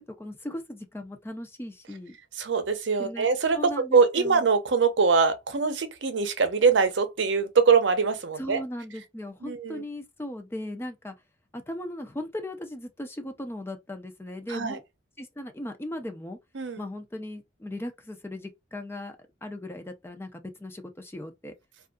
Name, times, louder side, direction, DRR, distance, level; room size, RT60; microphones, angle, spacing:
voice 1, 0.0-2.2 3.0-3.3 3.5-4.5 8.4-11.1 11.5-14.8 15.2-16.4 16.8-21.5, left 1 dB, 15° left, 0.4 m, -38 dB
voice 2, 2.3-3.6 3.9-8.6 9.4-9.8 14.5-14.8 16.5-16.8, right 5 dB, 70° right, 0.6 m, -23 dB
2.6 x 2.4 x 2.2 m
head